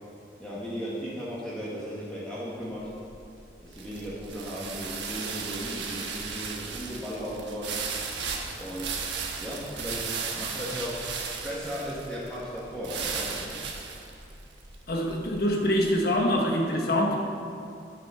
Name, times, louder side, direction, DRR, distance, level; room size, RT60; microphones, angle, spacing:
voice 1, 0.4-2.9 3.6-7.8 8.6-9.1 9.4-11.0 11.4-13.6, equal, 5° left, -8 dB, 1.4 m, -36 dB
sound 1, 2.9-16.0, right 5 dB, 80° right, 1.2 m, -36 dB
voice 2, 14.9-17.1, equal, 55° left, 0 dB, 1.0 m, -25 dB
9.4 x 8.2 x 5.6 m, 2.6 s
head